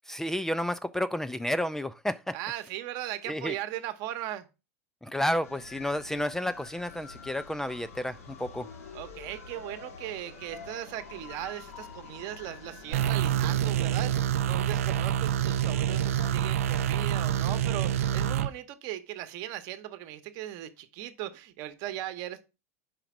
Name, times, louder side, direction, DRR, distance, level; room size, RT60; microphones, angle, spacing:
voice 1, 0.1-2.4 3.3-3.5 5.0-8.7, left 1 dB, 5° left, 0.4 m, -31 dB
voice 2, 2.3-4.5 8.9-14.1 14.4-22.4, right 13 dB, 55° right, 1.0 m, -38 dB
sound 1, 5.4-18.5, left 4 dB, 80° left, 1.8 m, -47 dB
sound 2, 12.9-18.5, right 10 dB, 75° right, 0.4 m, -27 dB
5.2 x 4.9 x 5.9 m
hypercardioid pair, 90°, 8 cm